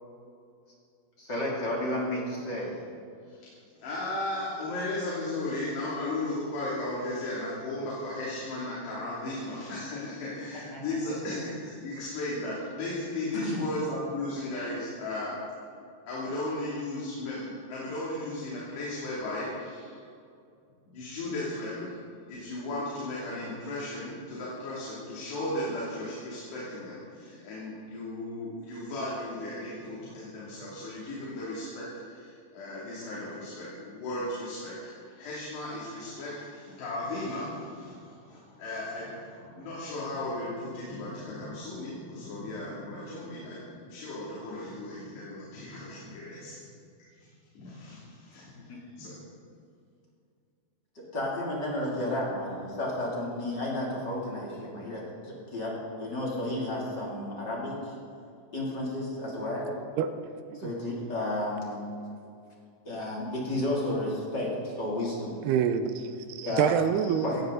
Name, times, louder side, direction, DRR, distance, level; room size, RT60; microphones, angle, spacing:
voice 1, 1.2-2.8 10.7-10.8 13.3-13.6 48.7-48.8 50.9-55.7 56.0-57.9 58.5-59.7 60.5-61.8 62.8-65.4 66.4-66.7 67.2-67.4, left 1 dB, 30° left, -4 dB, 3.1 m, -32 dB
voice 2, 3.8-15.3 16.1-20.0 20.9-21.9 22.3-46.6 47.5-49.2, left 2 dB, 75° left, -7 dB, 5.0 m, -36 dB
voice 3, 59.7-60.1 60.5-60.7 65.4-67.4, right 8 dB, 85° right, 10 dB, 2.6 m, -27 dB
17.0 x 17.0 x 4.0 m, 2.4 s
omnidirectional pair, 4.9 m